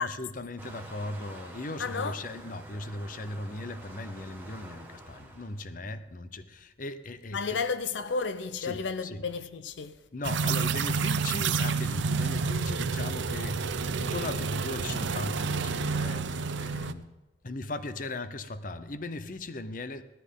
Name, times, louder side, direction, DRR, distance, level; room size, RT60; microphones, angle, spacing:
voice 1, 0.0-7.6 8.6-9.3 10.1-17.1 17.4-20.0, left 2 dB, 45° left, 0.7 m, -38 dB
Waves surf, 0.6-5.7, right 1 dB, 10° right, 1.6 m, -48 dB
voice 2, 1.8-2.2 7.3-10.0, left 5 dB, 85° left, 0.6 m, -32 dB
sound 1, 10.2-16.9, right 5 dB, 90° right, 0.6 m, -29 dB
17.0 x 13.5 x 3.8 m
head